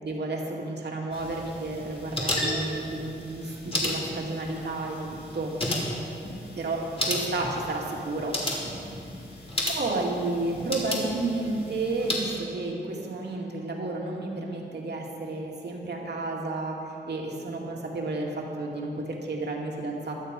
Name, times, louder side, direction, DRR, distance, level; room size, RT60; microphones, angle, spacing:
voice 1, 0.0-5.5 6.6-8.4 9.7-16.8 17.1-20.1, right 2 dB, 60° right, -1 dB, 2.3 m, -31 dB
sound 1, 1.1-12.2, left 1 dB, 30° left, 2.9 m, -33 dB
17.0 x 12.0 x 5.3 m, 2.7 s
wide cardioid pair, 135°, 19 cm